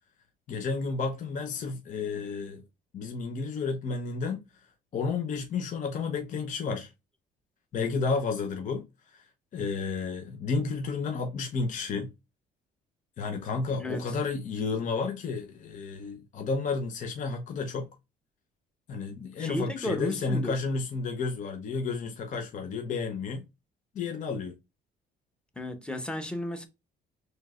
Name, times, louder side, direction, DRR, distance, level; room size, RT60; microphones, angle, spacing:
voice 1, 0.5-2.6 2.9-4.4 4.9-6.9 7.7-9.2 9.5-12.1 13.2-17.9 18.9-23.4 23.9-24.5, left 4 dB, 50° left, 0.7 m, -31 dB
voice 2, 19.4-20.5 25.6-26.7, left 1 dB, 5° left, 0.9 m, -33 dB
4.5 x 3.2 x 2.4 m
cardioid pair, 110°, 17 cm